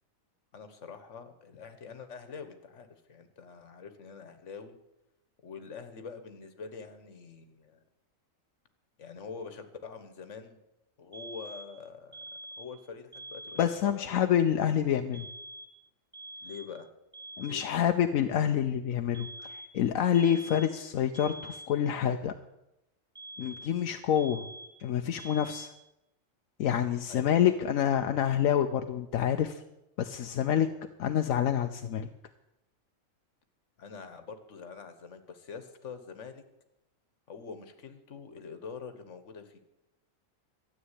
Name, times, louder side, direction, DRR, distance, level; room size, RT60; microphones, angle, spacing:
voice 1, 0.5-4.8 5.4-7.8 9.0-10.6 11.0-12.2 12.6-14.3 16.4-16.9 17.5-17.8 27.1-27.5 33.8-36.4 37.3-39.6, left 5 dB, 65° left, 9 dB, 1.6 m, -45 dB
sound 1, 11.1-11.8 12.1-12.8 13.1-13.8 15.1-15.8 16.1-16.8 17.1-17.8 19.1-19.8 20.1-20.8 21.1-21.8 23.2-23.8 24.2-24.8 25.2-25.8, right 1 dB, 10° right, 1.4 m, -46 dB
voice 2, 13.6-15.2 17.4-19.3 19.7-22.3 23.4-24.4 24.8-25.7 26.6-29.6 30.0-30.7 31.0-32.1, left 9 dB, 85° left, 6 dB, 1.1 m, -27 dB
13.0 x 8.6 x 8.2 m, 0.89 s
omnidirectional pair, 1.4 m